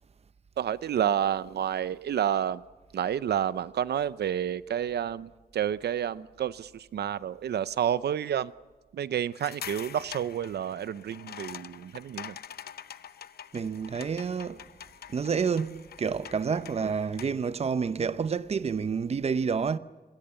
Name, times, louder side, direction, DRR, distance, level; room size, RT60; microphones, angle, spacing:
voice 1, 0.6-2.6 2.9-8.5 8.9-12.4 16.8-16.9, right 9 dB, 80° right, 0.7 m, -30 dB
sound 1, 9.3-17.5, left 9 dB, 70° left, 0.8 m, -45 dB
voice 2, 13.5-14.6 15.1-19.8, right 6 dB, 40° right, 0.8 m, -29 dB
27.0 x 21.5 x 7.0 m
wide cardioid pair, 155°, 17 cm